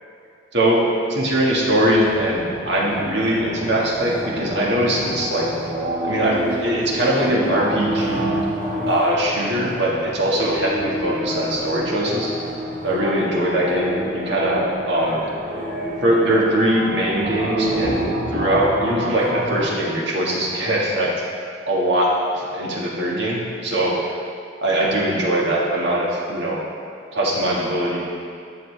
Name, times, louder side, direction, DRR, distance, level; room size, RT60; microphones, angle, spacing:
voice 1, 0.5-0.8 1.1-5.5 6.0-8.4 8.9-12.3 12.8-15.2 16.0-21.1 21.7-23.9 24.6-26.6 27.1-28.0, right 1 dB, 60° right, -4 dB, 1.6 m, -21 dB
sound 1, 1.8-19.8, right 1 dB, 45° right, 1.4 m, -28 dB
12.5 x 6.5 x 3.3 m, 2.3 s
head